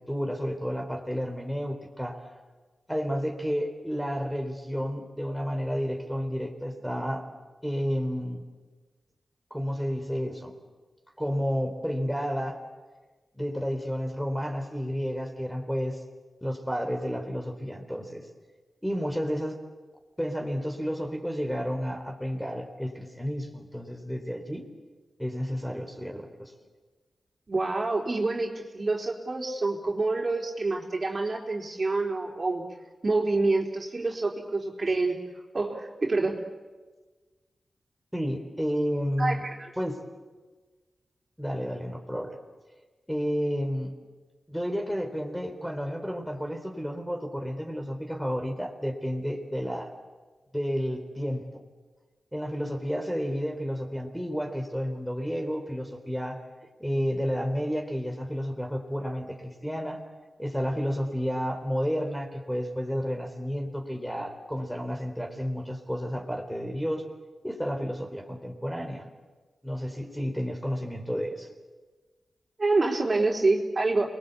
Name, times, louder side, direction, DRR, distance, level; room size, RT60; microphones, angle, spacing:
voice 1, 0.1-2.2 2.9-7.3 7.6-8.5 9.5-10.5 11.2-12.6 13.3-16.0 16.4-18.3 18.8-19.6 20.2-24.7 25.2-26.5 38.1-39.4 39.8-40.0 41.4-42.4 43.1-43.9 44.5-49.9 50.5-51.5 52.3-56.4 56.8-60.0 60.4-67.0 67.4-69.1 69.6-71.5, equal, ahead, 4 dB, 4.2 m, -31 dB
voice 2, 27.5-32.6 33.0-35.2 35.5-36.4 39.2-39.7 72.6-74.1, right 3 dB, 45° right, 0 dB, 4.0 m, -27 dB
29.0 x 21.5 x 8.5 m, 1.3 s
cardioid pair, 60°, 0 cm